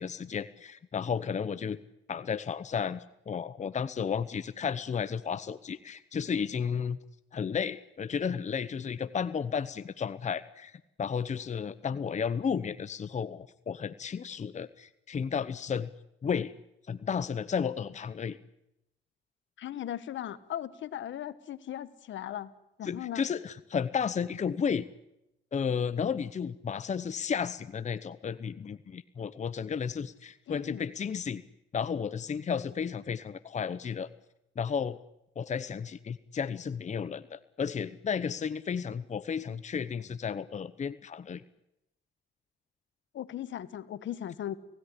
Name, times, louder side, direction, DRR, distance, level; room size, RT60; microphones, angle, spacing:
voice 1, 0.0-1.8 2.1-7.0 7.3-15.9 16.2-16.5 16.9-18.4 22.8-24.9 25.5-31.4 31.7-34.1 34.6-35.0 35.4-41.4, left 6 dB, 35° left, 13 dB, 0.9 m, -33 dB
voice 2, 19.6-22.5 22.8-23.2 30.5-30.8 43.1-44.5, left 11 dB, 70° left, 14 dB, 1.5 m, -38 dB
30.0 x 17.0 x 10.0 m, 0.88 s
cardioid pair, 90°, 20 cm